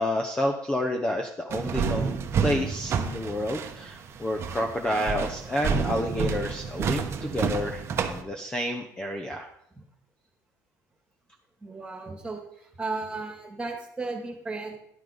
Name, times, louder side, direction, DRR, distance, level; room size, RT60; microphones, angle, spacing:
voice 1, 0.0-9.5, left 1 dB, 15° left, 4 dB, 0.8 m, -29 dB
sound 1, 1.5-8.2, right 6 dB, 40° right, 1.0 m, -29 dB
voice 2, 11.6-12.4 12.8-14.8, right 3 dB, 15° right, 2 dB, 2.1 m, -34 dB
11.0 x 5.8 x 5.2 m, 0.73 s
cardioid pair, 125°, 7 cm